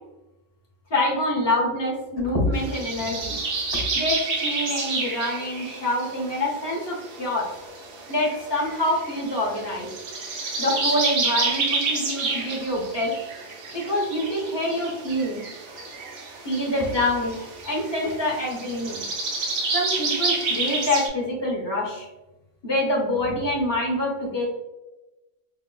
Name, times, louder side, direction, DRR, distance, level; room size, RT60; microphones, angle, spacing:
voice 1, 0.9-3.4 3.9-7.5 8.1-9.9 10.6-13.1 13.7-15.4 16.4-17.4 17.6-19.0 19.7-22.1 22.6-24.5, left 1 dB, 25° left, -3 dB, 0.8 m, -26 dB
sound 1, 2.5-21.1, right 3 dB, 85° right, 1.0 m, -30 dB
4.7 x 2.0 x 2.2 m, 1.0 s
omnidirectional pair, 1.2 m